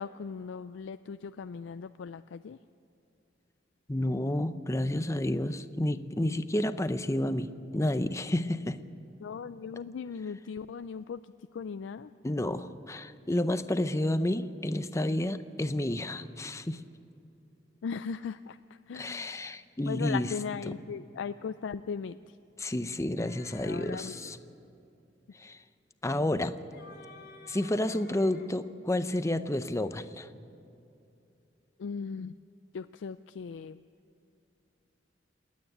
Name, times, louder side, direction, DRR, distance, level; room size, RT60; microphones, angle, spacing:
voice 1, 0.0-2.6 9.2-11.2 11.5-12.1 17.8-18.6 18.9-19.6 19.9-22.2 23.6-24.2 31.8-32.4 32.7-33.8, left 6 dB, 90° left, 11 dB, 0.4 m, -38 dB
voice 2, 3.9-8.8 12.2-16.8 18.9-20.3 20.7-20.8 22.6-24.4 25.4-25.6 26.0-26.6 27.5-30.3, left 1 dB, 15° left, 11 dB, 0.6 m, -30 dB
sound 1, 23.2-24.1 26.4-28.5, left 3 dB, 60° left, 1.8 m, -52 dB
27.5 x 9.5 x 10.0 m, 2.7 s
head